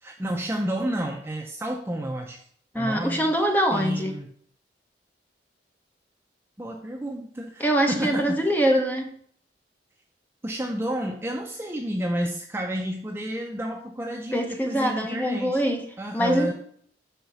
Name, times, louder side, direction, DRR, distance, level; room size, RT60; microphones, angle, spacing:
voice 1, 0.0-2.4 2.7-3.3 3.7-4.3 6.6-8.5 10.4-15.6 16.0-16.5, right 1 dB, 15° right, 1 dB, 0.4 m, -30 dB
voice 2, 2.7-4.1 7.6-9.1 14.3-15.9 16.1-16.5, equal, 10° left, 3 dB, 0.8 m, -23 dB
5.7 x 3.8 x 5.8 m, 0.62 s
head